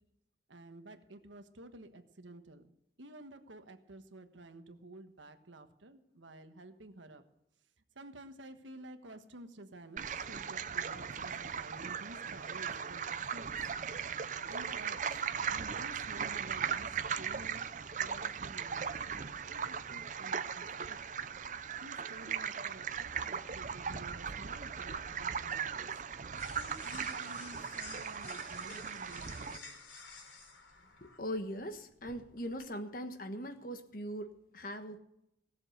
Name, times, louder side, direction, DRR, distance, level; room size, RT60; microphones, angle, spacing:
voice 1, 0.5-2.6 3.0-7.2 7.9-13.7 14.5-15.0 15.5-16.9 17.2-17.6 18.0-19.1 19.5-21.0 21.8-25.9 26.6-29.8, right 2 dB, 90° right, 7 dB, 1.4 m, -52 dB
sound 1, 10.0-29.6, right 7 dB, 40° right, 0.6 m, -38 dB
sound 2, 24.1-32.6, left 4 dB, 90° left, 3.6 m, -53 dB
voice 2, 31.0-35.0, equal, 50° left, 8 dB, 1.3 m, -40 dB
17.5 x 7.3 x 7.9 m, 0.80 s
head